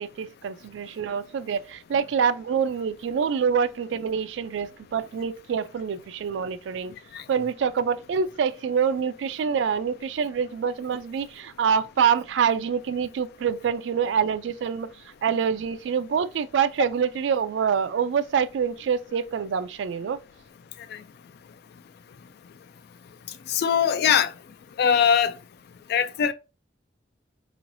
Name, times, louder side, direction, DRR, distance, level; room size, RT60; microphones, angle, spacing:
voice 1, 0.0-6.9 7.3-14.9 15.2-20.2, right 7 dB, 75° right, 0.3 m, -26 dB
voice 2, 23.5-24.3 24.8-25.3 25.9-26.3, left 8 dB, 60° left, 0.3 m, -21 dB
3.7 x 3.1 x 2.6 m
head